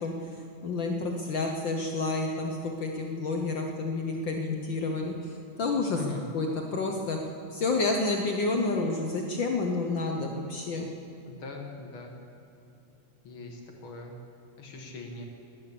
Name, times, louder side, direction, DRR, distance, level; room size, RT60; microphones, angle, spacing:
voice 1, 0.6-6.0 6.3-7.2 7.5-10.9, left 3 dB, 75° left, 2 dB, 1.0 m, -29 dB
voice 2, 5.9-6.3 11.3-12.1 13.2-14.1 14.6-15.3, left 4 dB, 50° left, 2 dB, 1.9 m, -41 dB
19.0 x 10.5 x 6.8 m, 2.8 s
omnidirectional pair, 3.5 m